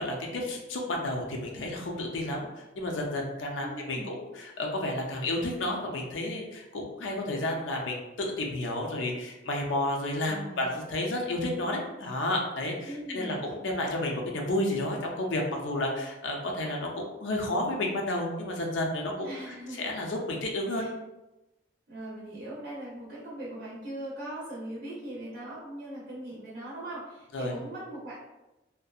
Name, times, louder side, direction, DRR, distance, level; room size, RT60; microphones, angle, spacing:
voice 1, 0.0-2.5 2.8-19.3 19.7-20.9 27.3-27.6, left 1 dB, 80° left, 0 dB, 0.5 m, -31 dB
voice 2, 3.6-4.2 10.2-10.7 12.8-13.4 19.2-19.9 20.7-20.9 21.9-28.2, right 1 dB, 60° right, -9 dB, 0.6 m, -40 dB
2.6 x 2.1 x 2.3 m, 0.99 s
head